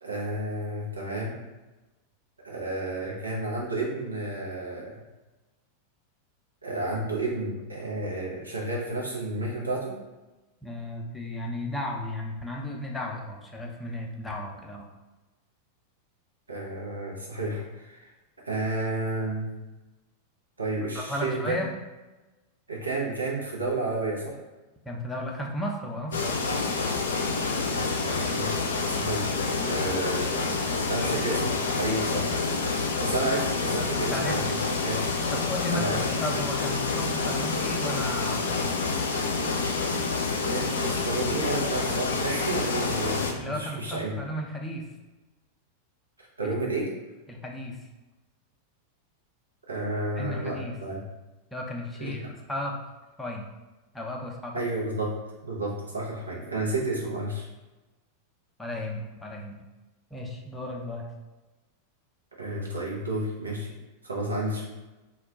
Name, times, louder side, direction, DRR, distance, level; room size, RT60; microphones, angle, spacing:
voice 1, 0.0-1.3 2.4-4.9 6.6-10.0 16.5-18.1 18.4-19.5 20.6-21.6 22.7-24.4 27.7-29.3 29.6-32.3 33.0-34.6 34.8-35.0 35.7-36.0 40.3-44.2 46.4-46.9 49.7-51.0 52.0-52.3 54.5-55.1 55.4-57.5 62.4-63.7 64.0-64.6, right 2 dB, 80° right, -3 dB, 0.7 m, -31 dB
voice 2, 10.6-14.9 20.9-21.7 24.9-26.4 34.1-34.4 35.3-38.7 43.4-44.9 46.4-46.5 47.3-47.8 50.2-50.8 51.5-52.8 53.2-53.5 53.9-54.6 58.6-59.6 60.1-61.1, left 1 dB, 10° left, -1 dB, 0.5 m, -34 dB
sound 1, 26.1-43.3, left 4 dB, 65° left, 0.3 m, -28 dB
2.2 x 2.2 x 3.6 m, 1.1 s
figure-of-eight pair, 90°, 0 cm